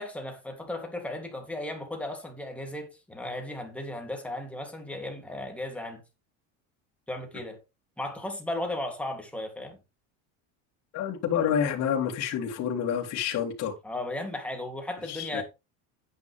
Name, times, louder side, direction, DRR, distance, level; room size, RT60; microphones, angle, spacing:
voice 1, 0.0-6.0 7.1-7.6 8.0-9.8 13.8-15.4, left 1 dB, 5° left, 3.2 m, -35 dB
voice 2, 10.9-13.8 15.0-15.4, left 8 dB, 45° left, 3.2 m, -28 dB
9.9 x 9.6 x 3.6 m
cardioid pair, 160°, 36 cm